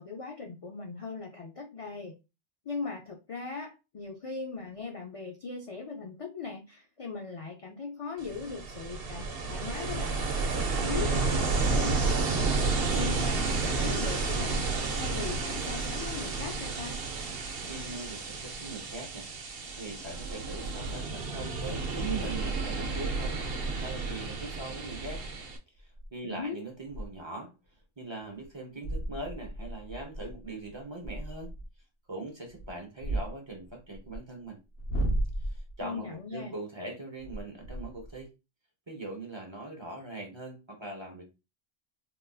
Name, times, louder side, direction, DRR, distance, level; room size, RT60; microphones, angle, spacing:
voice 1, 0.0-2.1 2.6-10.3 10.8-17.0 26.2-26.6 35.8-36.6, left 4 dB, 55° left, 1 dB, 0.3 m, -39 dB
Ocean, 8.2-25.6, right 3 dB, 60° right, 0.8 m, -31 dB
voice 2, 17.7-19.3 19.7-23.4 23.8-25.2 25.7-27.5 28.0-31.5 32.1-34.6 35.4-38.3 38.9-41.3, right 2 dB, 30° right, 1 dB, 0.7 m, -41 dB
sound 1, 21.3-21.4 25.0-25.3 25.8-26.1 26.4-26.5 26.8-27.2 27.7-27.8 28.3-28.5 28.8-31.7 32.4-34.2 34.7-35.8 37.2-38.2, right 1 dB, 75° left, 1.2 m, -35 dB
3.8 x 2.6 x 2.3 m, 0.27 s
omnidirectional pair, 1.2 m